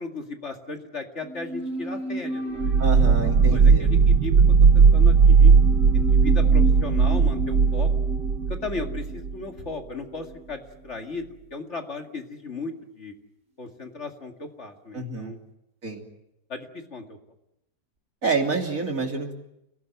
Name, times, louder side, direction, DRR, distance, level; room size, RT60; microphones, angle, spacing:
voice 1, 0.0-2.7 3.1-4.4 4.7-5.5 5.9-7.9 8.5-13.1 13.6-15.4 16.5-17.2, left 3 dB, 45° left, 4 dB, 2.5 m, -36 dB
sound 1, 1.2-10.5 10.8-10.9, right 1 dB, 40° right, 3.4 m, -34 dB
sound 2, 2.6-9.3, right 5 dB, 90° right, 1.7 m, -17 dB
voice 2, 2.8-3.9 14.9-15.3 15.8-16.0 18.2-19.3, right 4 dB, 55° right, 3 dB, 3.5 m, -28 dB
29.0 x 18.0 x 9.2 m, 0.86 s
omnidirectional pair, 1.7 m